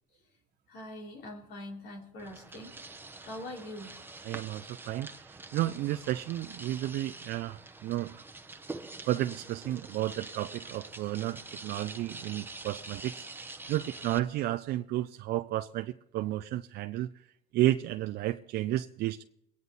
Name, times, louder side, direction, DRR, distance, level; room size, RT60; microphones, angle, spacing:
voice 1, 0.7-2.7 3.2-3.9, left 1 dB, 75° left, 3.8 m, -43 dB
sound 1, 2.2-14.2, right 3 dB, 10° right, 0.9 m, -45 dB
voice 2, 4.2-8.2 9.0-17.1 17.5-19.2, right 14 dB, 75° right, 0.5 m, -32 dB
23.0 x 9.5 x 4.0 m
cardioid pair, 110°, 17 cm